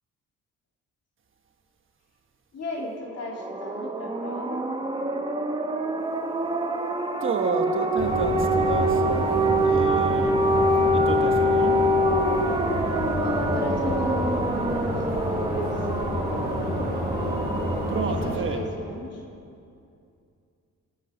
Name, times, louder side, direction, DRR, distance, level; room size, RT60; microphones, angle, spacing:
voice 1, 2.5-4.6 13.2-16.2 17.6-17.7 18.1-19.2, left 1 dB, 55° left, -1 dB, 3.0 m, -36 dB
sound 1, 3.2-18.0, right 1 dB, 15° right, 0.8 m, -25 dB
voice 2, 7.2-10.4 10.9-11.9 17.9-18.6, right 5 dB, 45° right, 4 dB, 1.2 m, -31 dB
sound 2, 8.0-18.4, left 1 dB, 35° left, 4.3 m, -29 dB
25.0 x 8.8 x 6.4 m, 2.5 s
wide cardioid pair, 175°, 30 cm